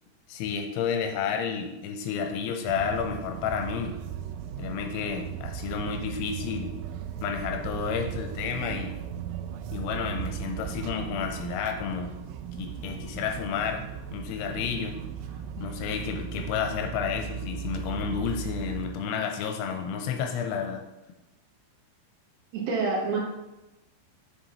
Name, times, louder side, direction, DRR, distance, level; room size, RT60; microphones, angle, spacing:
voice 1, 0.3-3.9 4.6-6.7 7.2-9.0 9.7-12.1 12.6-13.8 14.1-15.0 15.6-20.8, left 6 dB, 85° left, 4 dB, 2.9 m, -31 dB
sound 1, 2.7-18.9, right 8 dB, 85° right, 3.0 m, -37 dB
voice 2, 22.5-23.2, right 4 dB, 70° right, -1 dB, 3.0 m, -27 dB
7.5 x 7.0 x 3.0 m, 0.99 s
omnidirectional pair, 5.5 m